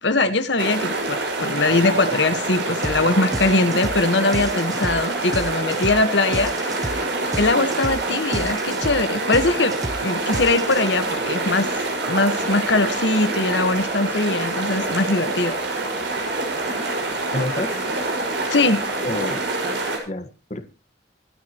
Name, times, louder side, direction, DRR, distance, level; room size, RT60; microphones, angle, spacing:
voice 1, 0.0-7.0 7.4-9.7 10.0-11.7 12.1-15.5 15.9-16.0 18.5-18.8, left 2 dB, 70° left, 9 dB, 1.4 m, -21 dB
sound 1, 0.6-20.0, right 2 dB, 75° right, 5.6 m, -26 dB
sound 2, 2.8-3.0 3.3-11.1, right 1 dB, 20° right, 0.7 m, -31 dB
voice 2, 17.3-17.7 19.0-19.4 20.1-20.6, left 1 dB, 40° left, 8 dB, 1.5 m, -28 dB
25.0 x 9.7 x 3.0 m, 0.34 s
head